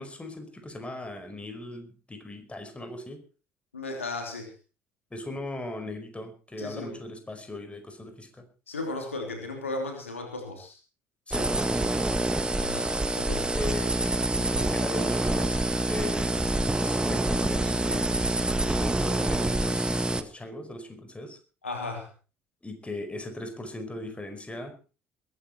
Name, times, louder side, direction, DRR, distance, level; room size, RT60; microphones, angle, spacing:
voice 1, 0.0-3.2 5.1-8.4 11.3-12.0 13.5-16.5 16.8-21.4 22.6-24.7, left 1 dB, 15° left, 7 dB, 5.0 m, -38 dB
voice 2, 3.7-4.5 6.6-7.0 8.7-10.8 12.6-12.9 13.1-13.5 21.6-22.1, left 2 dB, 90° left, 3 dB, 3.1 m, -35 dB
sound 1, 11.3-20.2, right 2 dB, 15° right, 1.7 m, -26 dB
21.5 x 10.5 x 4.5 m, 0.35 s
figure-of-eight pair, 55°, 7 cm